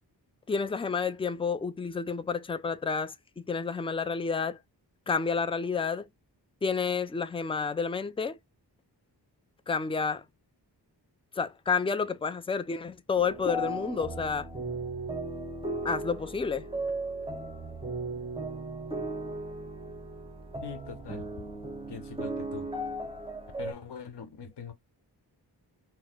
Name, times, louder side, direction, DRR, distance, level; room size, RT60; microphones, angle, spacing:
voice 1, 0.5-4.6 5.1-6.1 6.6-8.4 9.7-10.2 11.4-14.5 15.8-16.7, left 5 dB, 15° left, 0.4 m, -30 dB
sound 1, 13.1-23.7, right 2 dB, 15° right, 0.8 m, -36 dB
voice 2, 20.6-21.5 21.9-22.7 23.6-24.7, left 6 dB, 70° left, 1.0 m, -42 dB
4.1 x 2.1 x 2.3 m
cardioid pair, 50°, 42 cm